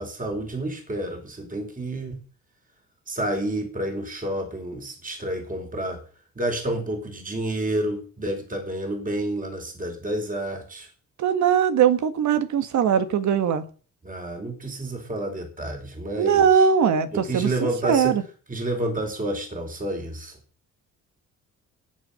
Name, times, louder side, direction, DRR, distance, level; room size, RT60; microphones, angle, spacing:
voice 1, 0.0-2.2 3.1-6.0 6.4-10.9 14.0-16.7 17.1-18.1 18.5-20.4, right 1 dB, 25° right, 4.5 m, -29 dB
voice 2, 11.2-13.7 16.2-18.2, right 7 dB, 70° right, 1.8 m, -20 dB
19.0 x 7.8 x 5.7 m
cardioid pair, 90°, 30 cm